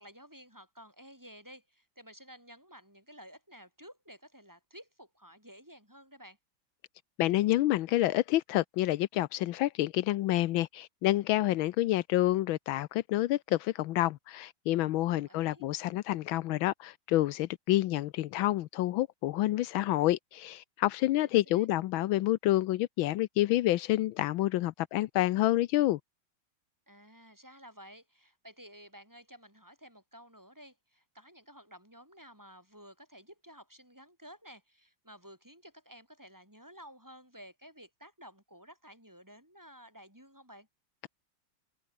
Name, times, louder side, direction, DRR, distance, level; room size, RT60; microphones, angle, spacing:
voice 1, 0.0-6.4 15.1-15.7 21.3-21.7 26.9-40.7, equal, 10° right, 7.1 m, -53 dB
voice 2, 7.2-26.0, left 15 dB, 85° left, 1.5 m, -28 dB
omnidirectional pair, 2.1 m